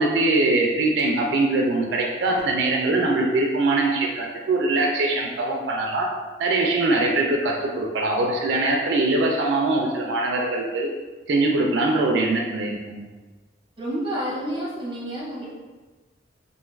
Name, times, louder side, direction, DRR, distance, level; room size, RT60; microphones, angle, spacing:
voice 1, 0.0-6.1 6.4-10.9 11.3-13.1, right 2 dB, 70° right, 0 dB, 0.3 m, -22 dB
voice 2, 13.8-15.5, equal, 25° right, -4 dB, 0.6 m, -29 dB
2.6 x 2.3 x 3.1 m, 1.3 s
head